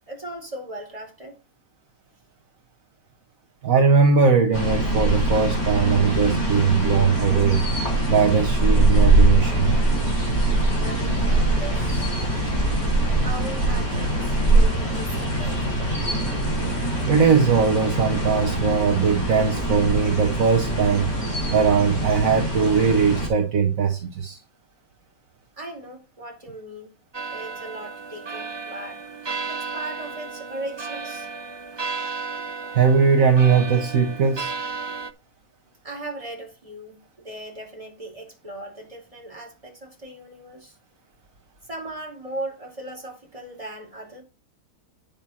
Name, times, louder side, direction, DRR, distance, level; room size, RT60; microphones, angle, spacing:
voice 1, 0.1-1.4 10.8-12.1 13.2-15.6 25.6-26.9 27.3-29.0 29.5-31.3 35.8-40.8 41.6-44.2, right 1 dB, 20° right, 4.6 m, -38 dB
voice 2, 3.6-7.6 8.1-9.8 17.0-21.1 21.5-24.4 32.7-34.5, right 5 dB, 65° right, 1.7 m, -20 dB
sound 1, 4.5-23.3, right 1 dB, 30° left, 5.4 m, -23 dB
sound 2, 5.3-18.5, left 1 dB, 90° left, 3.8 m, -34 dB
sound 3, 27.1-35.1, right 4 dB, 40° right, 0.3 m, -33 dB
9.1 x 7.4 x 4.2 m
omnidirectional pair, 1.5 m